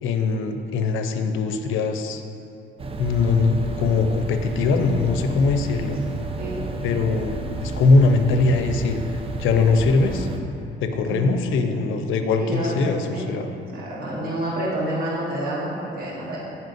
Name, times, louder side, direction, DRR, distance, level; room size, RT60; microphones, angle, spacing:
voice 1, 0.0-2.2 3.0-6.0 6.8-9.0 9.4-10.3 10.8-13.5, left 3 dB, 80° left, 6 dB, 0.5 m, -21 dB
sound 1, 2.8-10.4, right 3 dB, 30° right, 0.5 m, -31 dB
voice 2, 12.4-12.8 13.1-13.3 13.7-16.4, right 1 dB, 50° right, -7 dB, 1.6 m, -28 dB
8.9 x 5.5 x 2.6 m, 2.6 s
cardioid pair, 90°, 20 cm